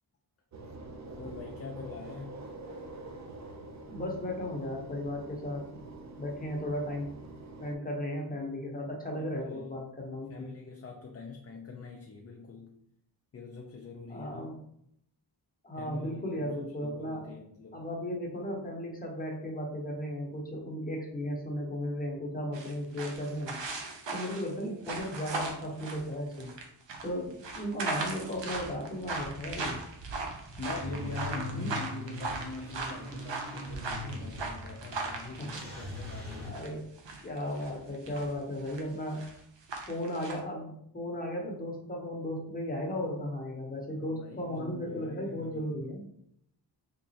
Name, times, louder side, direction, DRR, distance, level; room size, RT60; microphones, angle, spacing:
sound 1, 0.5-7.7, right 2 dB, 40° right, 0.5 m, -46 dB
voice 1, 1.2-2.4 9.1-9.9 10.3-12.8 13.3-14.5 15.7-17.9 30.6-36.7 44.0-45.7, left 4 dB, 35° left, 0 dB, 0.4 m, -43 dB
voice 2, 3.9-5.7 6.2-7.1 7.6-10.5 14.1-14.5 15.6-17.2 17.7-23.6 24.1-26.5 27.0-29.8 31.5-31.8 35.4-35.5 36.4-36.8 37.2-39.2 39.9-46.1, equal, 20° left, -1 dB, 0.8 m, -35 dB
sound 2, 22.5-36.7 37.0-38.3 38.6-38.8 39.1-39.4 39.7-40.4, right 3 dB, 80° right, 0.7 m, -38 dB
Car / Engine starting / Idling, 30.8-36.5, left 1 dB, 20° right, 1.2 m, -41 dB
3.6 x 3.0 x 2.8 m, 0.73 s
wide cardioid pair, 120°, 43 cm